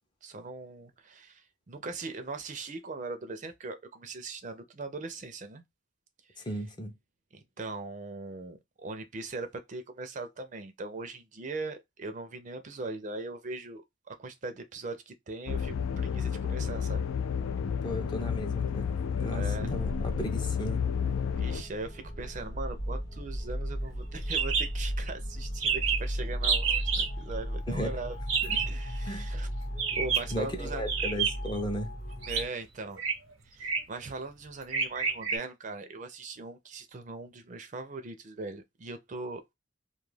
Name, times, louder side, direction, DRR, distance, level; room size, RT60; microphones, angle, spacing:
voice 1, 0.2-5.6 6.3-6.5 7.3-13.8 14.1-17.1 19.3-19.7 21.3-28.2 28.7-29.5 29.9-30.8 32.3-33.0 33.5-39.4, right 3 dB, 40° right, 0.4 m, -40 dB
voice 2, 6.4-6.9 17.8-20.8 27.7-27.9 28.4-28.6 29.0-29.3 30.3-31.9, equal, 20° left, 0.4 m, -35 dB
sound 1, 15.5-21.6, left 7 dB, 90° left, 0.3 m, -31 dB
sound 2, 19.3-32.5, equal, 50° left, 0.8 m, -36 dB
sound 3, 24.3-24.7 25.0-25.1 25.3-25.4 25.6-26.1 26.4-27.1 28.3-28.7 29.7-30.3 30.9-31.6 32.2-32.4 33.0-33.1 33.6-34.0 34.7-35.4, right 6 dB, 90° right, 0.8 m, -29 dB
2.3 x 2.2 x 3.1 m
head